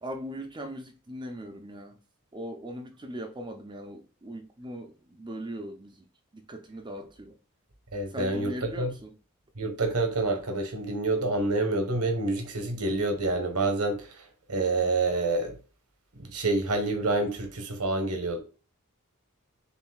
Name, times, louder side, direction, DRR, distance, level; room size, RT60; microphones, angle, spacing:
voice 1, 0.0-2.0 2.3-6.0 6.3-7.4 8.1-9.2, equal, 20° right, 0.5 m, -39 dB
voice 2, 7.9-8.9 9.6-14.1 14.5-15.6 16.3-18.4, right 2 dB, 80° right, 1.2 m, -27 dB
6.9 x 2.6 x 2.3 m
head